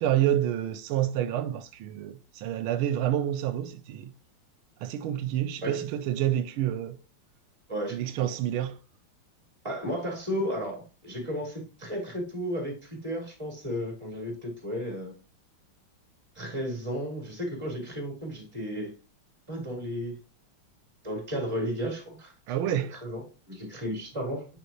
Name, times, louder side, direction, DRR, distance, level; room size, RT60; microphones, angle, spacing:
voice 1, 0.0-4.1 4.8-7.0 7.9-8.8 22.5-23.0, right 11 dB, 85° right, 1.4 m, -28 dB
voice 2, 7.7-8.3 9.6-15.1 16.4-18.9 19.5-20.2 21.0-22.7 23.0-24.5, equal, 15° right, 3.8 m, -34 dB
10.5 x 4.0 x 3.0 m
omnidirectional pair, 2.2 m